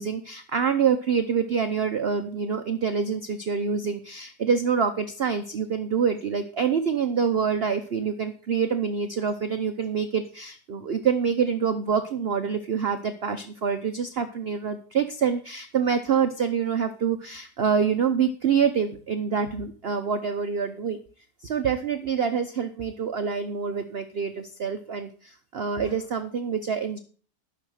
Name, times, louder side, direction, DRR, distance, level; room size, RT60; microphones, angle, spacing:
voice 1, 0.0-21.0 21.4-25.1 25.5-27.0, right 6 dB, 50° right, 8 dB, 0.8 m, -26 dB
11.5 x 6.4 x 6.4 m, 0.42 s
omnidirectional pair, 1.8 m